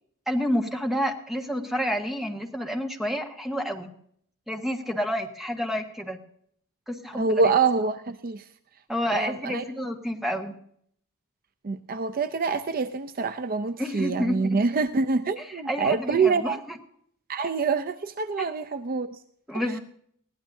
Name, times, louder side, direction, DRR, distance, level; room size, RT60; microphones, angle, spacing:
voice 1, 0.3-3.9 4.5-6.2 6.9-7.4 8.9-10.5 13.8-14.6 15.4-16.8 18.4-18.5 19.5-19.8, equal, ahead, 3 dB, 1.5 m, -29 dB
voice 2, 7.1-8.5 9.0-9.6 11.6-16.6 17.3-19.2 19.5-19.6, right 4 dB, 40° right, 10 dB, 0.5 m, -26 dB
21.0 x 16.0 x 2.7 m, 0.65 s
head